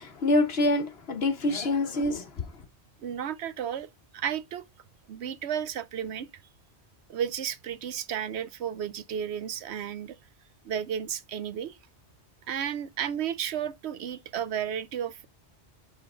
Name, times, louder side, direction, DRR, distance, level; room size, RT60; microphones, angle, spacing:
voice 1, 0.0-2.5, left 2 dB, 65° left, 1.4 m, -26 dB
voice 2, 3.0-4.6 5.1-6.3 7.1-10.2 10.6-11.8 12.5-15.3, right 9 dB, 75° right, 0.9 m, -33 dB
5.8 x 5.7 x 3.8 m
omnidirectional pair, 1.1 m